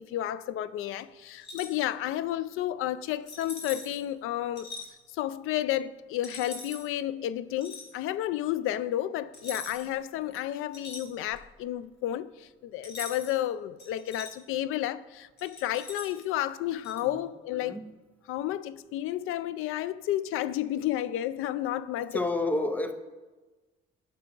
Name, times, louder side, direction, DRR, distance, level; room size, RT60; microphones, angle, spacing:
voice 1, 0.0-4.7 5.1-17.8 18.3-22.2, left 13 dB, 85° left, 0.4 m, -31 dB
sound 1, 1.4-1.8 3.3-4.0 4.6-4.9 6.2-6.8 7.6-7.9 9.3-10.0 10.3-11.5 12.8-13.4 13.8-14.3 15.4-16.2 16.8-17.0, left 3 dB, 50° left, 1.7 m, -42 dB
voice 2, 17.5-17.9 22.1-22.9, left 2 dB, 10° left, 0.5 m, -30 dB
12.0 x 5.7 x 3.9 m
cardioid pair, 170°, 21 cm